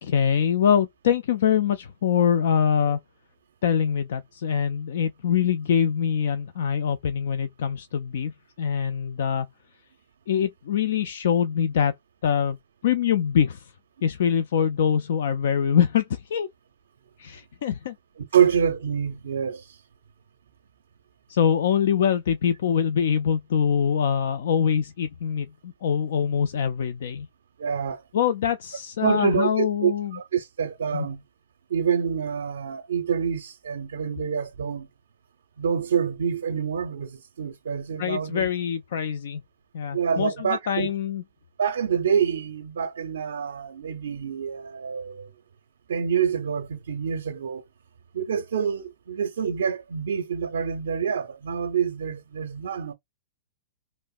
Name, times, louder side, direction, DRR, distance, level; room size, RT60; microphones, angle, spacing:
voice 1, 0.0-3.0 3.6-8.3 8.6-9.5 10.3-11.9 12.2-12.6 12.8-13.6 14.0-16.0 16.3-16.5 17.2-17.9 21.3-27.3 28.1-30.2 30.9-31.1 38.0-39.4 39.7-41.2, left 8 dB, 75° left, 0.3 m, -24 dB
voice 2, 18.3-19.8 27.6-28.0 29.0-31.2 31.7-34.9 35.6-38.5 39.9-40.9 41.6-45.3 45.9-47.6 48.1-52.9, right 7 dB, 85° right, 0.5 m, -26 dB
3.1 x 2.0 x 2.4 m
hypercardioid pair, 130°, 0 cm